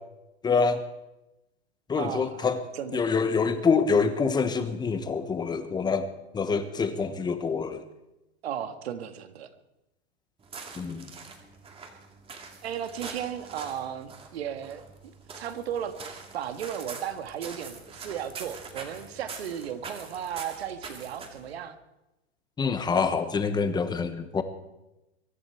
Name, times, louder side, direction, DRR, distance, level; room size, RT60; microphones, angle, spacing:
voice 1, 0.4-0.8 1.9-2.6 2.9-6.1 6.3-7.8 10.8-11.1 22.6-24.4, left 5 dB, 10° left, 10 dB, 1.2 m, -26 dB
voice 2, 1.9-2.5 2.7-3.1 8.4-9.5 12.6-14.8 15.4-21.8, right 9 dB, 70° right, 8 dB, 1.8 m, -35 dB
sound 1, 10.4-21.6, right 4 dB, 15° right, 2.3 m, -44 dB
23.0 x 11.0 x 4.7 m, 0.95 s
hypercardioid pair, 125°, 33 cm